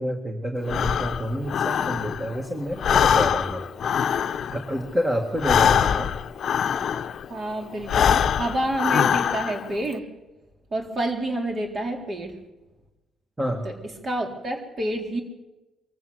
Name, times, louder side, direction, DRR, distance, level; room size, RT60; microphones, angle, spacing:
voice 1, 0.0-3.7 4.5-6.1 13.4-13.6, equal, 15° right, 3 dB, 2.0 m, -28 dB
Breathing, 0.7-2.4 2.7-7.3 7.8-9.7, left 8 dB, 60° left, 0.8 m, -23 dB
voice 2, 7.3-10.1 10.7-12.4 13.6-13.7 14.0-15.2, right 1 dB, 40° right, 2 dB, 3.8 m, -28 dB
24.0 x 14.5 x 7.9 m, 1.1 s
cardioid pair, 90°, 0 cm